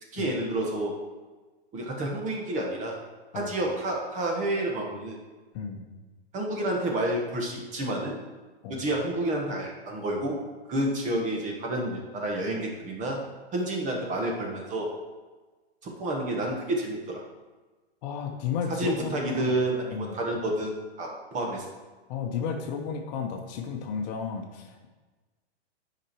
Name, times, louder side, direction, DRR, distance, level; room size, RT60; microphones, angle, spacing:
voice 1, 0.1-0.9 1.7-3.0 3.3-5.2 6.3-8.2 8.7-10.4 10.7-13.2 13.5-14.9 15.8-17.2 18.7-21.7, right 1 dB, 25° right, 0 dB, 1.5 m, -29 dB
voice 2, 5.5-5.8 8.6-8.8 18.0-19.6 19.9-20.2 22.1-24.9, left 6 dB, 40° left, 3 dB, 1.0 m, -33 dB
8.5 x 5.2 x 4.5 m, 1.3 s
hypercardioid pair, 135°, 32 cm